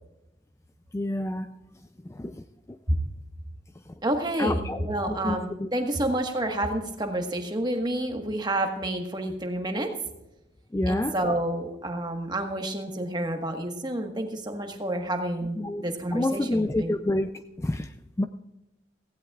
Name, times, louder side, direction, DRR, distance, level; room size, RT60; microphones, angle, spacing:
voice 1, 0.9-1.5 2.2-2.3 4.4-5.7 10.7-11.1 15.6-15.8 16.1-17.3 17.6-17.9 18.2-18.3, left 1 dB, 15° left, 9 dB, 0.3 m, -28 dB
voice 2, 4.0-9.9 10.9-17.0, right 1 dB, 20° right, 4 dB, 1.4 m, -29 dB
16.5 x 16.0 x 2.4 m, 0.94 s
head